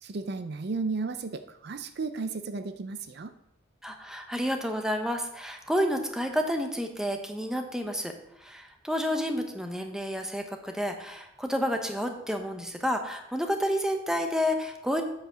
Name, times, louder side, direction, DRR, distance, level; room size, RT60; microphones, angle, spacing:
voice 1, 0.0-3.3, right 4 dB, 55° right, 10 dB, 0.5 m, -34 dB
voice 2, 3.8-8.1 8.4-15.0, equal, 5° right, 4 dB, 1.0 m, -30 dB
7.9 x 6.9 x 6.2 m, 0.82 s
head